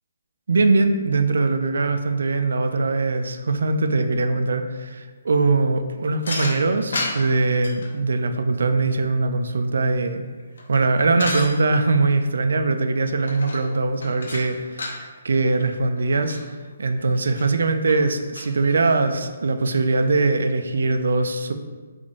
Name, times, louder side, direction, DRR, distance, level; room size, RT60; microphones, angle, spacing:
voice 1, 0.5-10.2 10.7-16.4 16.8-21.5, right 3 dB, 75° right, 8 dB, 0.3 m, -21 dB
sound 1, 6.2-7.9 10.2-11.5 13.2-13.7 14.0-15.0 15.6-15.7 16.0-16.4 17.1-17.5 17.9-18.0 18.4-19.1, left 2 dB, 90° left, 0.7 m, -32 dB
3.6 x 2.5 x 3.5 m, 1.4 s
hypercardioid pair, 180°, 0 cm